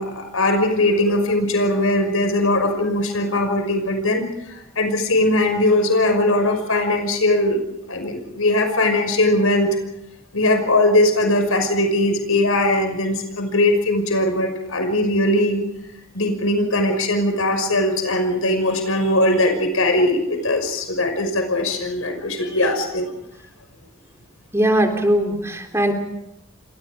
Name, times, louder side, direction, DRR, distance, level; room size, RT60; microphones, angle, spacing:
voice 1, 0.0-7.6 7.9-9.8 10.3-15.6 16.1-23.1, left 1 dB, 85° left, 5 dB, 5.7 m, -20 dB
voice 2, 24.5-25.9, right 1 dB, 15° right, 3 dB, 3.6 m, -19 dB
29.0 x 25.0 x 5.1 m, 0.84 s
head